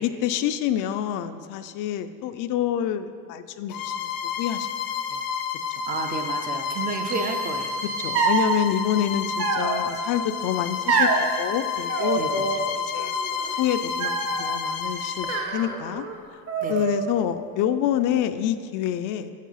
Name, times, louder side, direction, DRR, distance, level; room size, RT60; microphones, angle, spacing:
voice 1, 0.0-4.7 5.1-5.2 8.0-13.1 13.6-16.0 16.3-16.4 16.7-19.3, left 10 dB, 65° left, 10 dB, 0.4 m, -27 dB
Bowed string instrument, 3.7-15.5, left 6 dB, 85° left, 0.8 m, -30 dB
voice 2, 5.9-7.8 12.2-12.4 16.6-16.7, right 4 dB, 25° right, 5 dB, 0.4 m, -31 dB
sound 1, 7.1-9.0, right 9 dB, 85° right, 0.6 m, -39 dB
sound 2, 8.1-8.6 9.4-10.1 10.9-11.3 11.9-12.7 13.0-13.5 14.0-14.5 15.2-16.1 16.5-17.2, right 4 dB, 45° right, 0.8 m, -26 dB
7.3 x 5.3 x 5.6 m, 2.2 s
cardioid pair, 175°, 34 cm